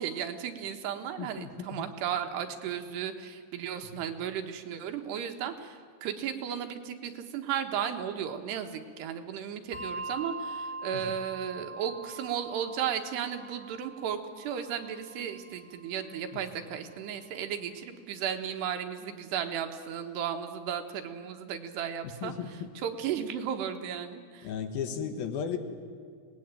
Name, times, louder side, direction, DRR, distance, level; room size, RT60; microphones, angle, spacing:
voice 1, 0.0-24.5, right 8 dB, 85° right, 6 dB, 3.5 m, -35 dB
voice 2, 1.2-1.9 3.9-4.0 10.9-11.2 16.3-16.4 22.0-22.7 24.4-25.6, left 7 dB, 70° left, 7 dB, 3.1 m, -36 dB
Bell, 9.7-16.6, right 3 dB, 30° right, 1.3 m, -43 dB
25.5 x 19.0 x 9.1 m, 2.1 s
omnidirectional pair, 4.7 m